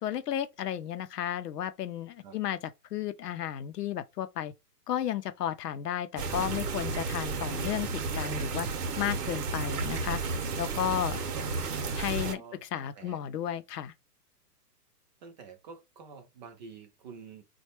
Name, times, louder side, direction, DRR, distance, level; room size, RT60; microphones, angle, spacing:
voice 1, 0.0-2.6 2.9-4.5 4.9-8.7 9.0-10.2 10.6-11.2 12.0-12.4 12.7-13.9, left 10 dB, 75° left, 0.6 m, -33 dB
sound 1, 6.2-12.4, right 4 dB, 70° right, 0.8 m, -33 dB
voice 2, 11.3-11.6 12.2-13.2 15.2-17.4, right 5 dB, 30° right, 0.5 m, -48 dB
3.2 x 2.2 x 2.9 m
hypercardioid pair, 130°, 48 cm